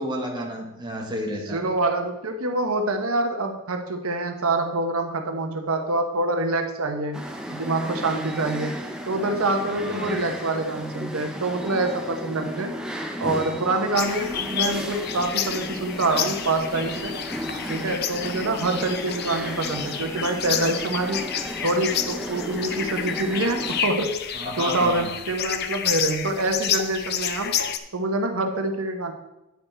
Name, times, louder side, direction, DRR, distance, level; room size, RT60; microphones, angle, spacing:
voice 1, 0.0-1.6 9.6-10.3 24.3-25.1, equal, 20° right, 0 dB, 1.3 m, -31 dB
voice 2, 1.5-7.2 7.5-8.7 9.1-12.7 13.2-17.1 17.7-21.2 21.6-24.1 24.6-27.6 27.9-29.1, right 2 dB, 90° right, 5 dB, 1.0 m, -26 dB
sound 1, 7.1-23.8, equal, 5° right, 0.6 m, -34 dB
sound 2, 13.9-27.8, left 8 dB, 50° left, 0.5 m, -30 dB
9.4 x 6.9 x 4.5 m, 0.96 s
head